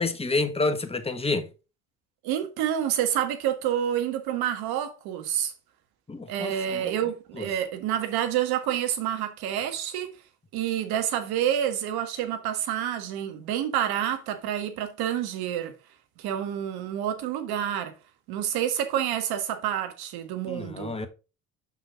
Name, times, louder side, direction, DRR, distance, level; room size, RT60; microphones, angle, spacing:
voice 1, 0.0-1.5 6.1-6.9 7.4-7.5 20.5-21.1, left 3 dB, 15° left, 1.3 m, -29 dB
voice 2, 2.2-5.5 6.3-10.1 10.5-15.7 16.2-17.9 18.3-21.1, right 10 dB, 65° right, 1.7 m, -28 dB
6.0 x 5.7 x 4.7 m
hypercardioid pair, 60°, 41 cm